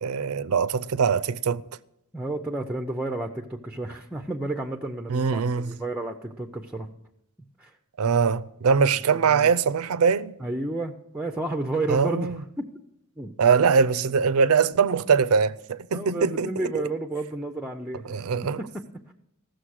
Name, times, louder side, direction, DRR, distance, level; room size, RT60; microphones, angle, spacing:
voice 1, 0.0-1.6 5.1-5.8 8.0-10.4 11.9-12.4 13.4-16.9 18.1-18.6, right 5 dB, 85° right, 0.5 m, -22 dB
voice 2, 2.1-6.9 7.6-7.8 9.1-9.5 10.4-12.7 13.2-13.3 15.9-18.2 18.6-19.1, right 2 dB, 5° right, 0.5 m, -31 dB
15.0 x 6.5 x 6.3 m
head